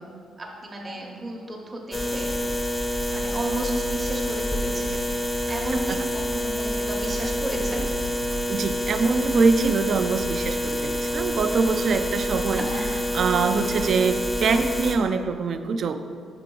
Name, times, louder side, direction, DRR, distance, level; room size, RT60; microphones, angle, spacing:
voice 1, 0.4-2.4 3.0-5.0 5.5-7.9 12.5-12.8, right 1 dB, 30° right, -1 dB, 0.8 m, -33 dB
sound 1, 1.9-15.0, equal, 10° left, 0.5 m, -27 dB
voice 2, 8.5-16.0, right 4 dB, 60° right, 8 dB, 0.4 m, -24 dB
5.8 x 4.7 x 3.8 m, 2.2 s
cardioid pair, 90°, 0 cm